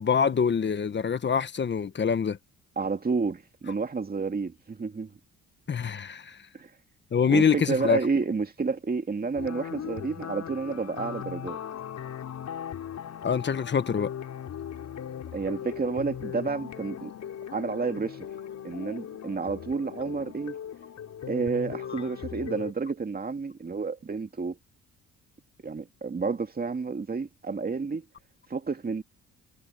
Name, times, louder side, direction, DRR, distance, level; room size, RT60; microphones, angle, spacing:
voice 1, 0.0-2.4 5.7-6.4 7.1-8.0 13.2-14.1 21.9-22.0, left 6 dB, 35° left, 1.2 m, -25 dB
voice 2, 2.8-5.1 6.5-6.7 7.3-11.6 15.3-17.1 17.5-18.3 18.6-20.6 21.3-24.6 25.6-28.0 28.5-29.0, right 4 dB, 30° right, 2.4 m, -30 dB
sound 1, 9.3-22.7, left 9 dB, 65° left, 6.2 m, -38 dB
cardioid pair, 90°, 30 cm